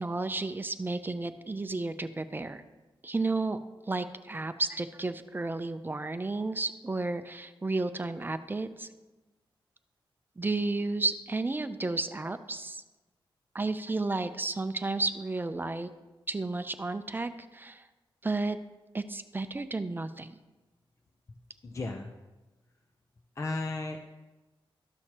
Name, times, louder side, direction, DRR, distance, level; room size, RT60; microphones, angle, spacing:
voice 1, 0.0-2.6 3.0-3.6 3.9-8.9 10.4-12.8 13.5-15.9 16.3-17.8 18.2-18.6 18.9-20.3, right 3 dB, 20° right, 10 dB, 0.5 m, -32 dB
voice 2, 21.6-22.1 23.4-24.0, left 2 dB, 35° left, 3 dB, 0.6 m, -34 dB
13.0 x 6.3 x 2.9 m, 1.1 s
cardioid pair, 85°, 9 cm